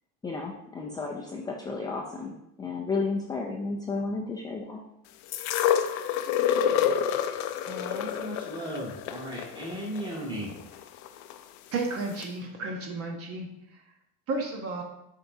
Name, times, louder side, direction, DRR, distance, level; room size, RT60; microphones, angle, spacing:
voice 1, 0.2-4.8, left 3 dB, 10° left, 0 dB, 0.4 m, -33 dB
sound 1, 5.3-11.4 12.2-12.3, left 9 dB, 70° left, 0.5 m, -28 dB
voice 2, 7.7-10.5, right 1 dB, 15° right, -5 dB, 1.9 m, -36 dB
voice 3, 11.7-13.5 14.3-14.8, right 3 dB, 45° right, 1 dB, 1.0 m, -32 dB
7.6 x 4.6 x 2.7 m, 0.83 s
cardioid pair, 130°, 32 cm